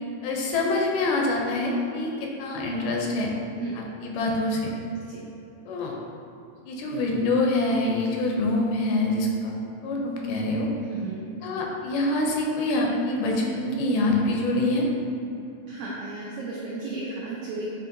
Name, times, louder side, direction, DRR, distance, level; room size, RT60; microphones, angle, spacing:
voice 1, 0.2-3.3 4.0-4.7 5.7-5.9 6.7-9.5 9.8-10.7 11.4-14.9, left 2 dB, 80° left, -1 dB, 2.0 m, -25 dB
voice 2, 10.8-11.2 15.7-17.7, right 3 dB, 85° right, -6 dB, 1.5 m, -34 dB
7.0 x 2.7 x 2.5 m, 2.8 s
omnidirectional pair, 3.8 m